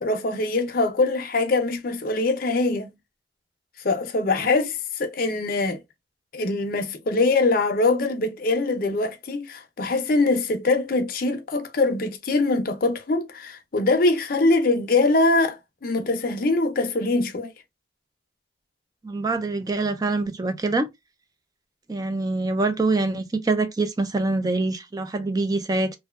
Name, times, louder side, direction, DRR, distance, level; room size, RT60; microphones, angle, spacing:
voice 1, 0.0-2.9 3.8-5.8 6.3-17.5, left 3 dB, 50° left, 0.5 m, -23 dB
voice 2, 19.0-20.9 21.9-26.0, right 3 dB, 20° right, 0.3 m, -25 dB
2.6 x 2.2 x 2.2 m
head